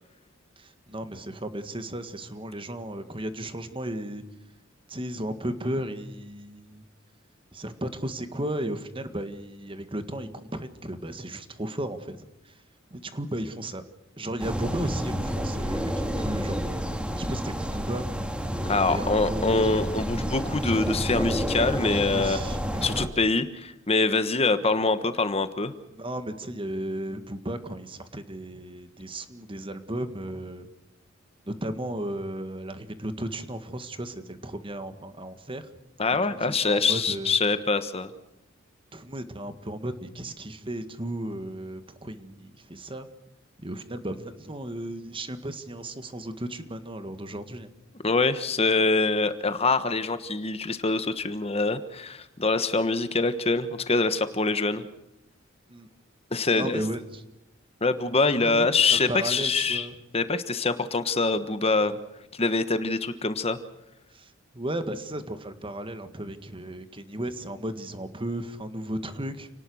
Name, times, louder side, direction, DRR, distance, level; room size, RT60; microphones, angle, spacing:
voice 1, 0.6-4.2 4.9-6.8 7.5-12.5 12.9-13.8 14.2-16.8 17.2-18.1 18.9-19.7 22.0-22.9 26.0-30.7 31.5-35.7 36.3-37.4 38.9-43.1 43.6-47.7 55.7-55.9 56.5-57.2 58.4-60.0 64.1-69.5, right 1 dB, 25° right, 9 dB, 1.9 m, -35 dB
sound 1, 14.4-23.1, equal, 5° right, 2.3 m, -29 dB
voice 2, 18.7-25.7 36.0-38.1 48.0-54.8 56.3-56.8 57.8-59.9 60.1-62.0 62.3-63.6, left 3 dB, 30° left, 11 dB, 1.3 m, -25 dB
29.5 x 19.0 x 6.4 m, 0.87 s
head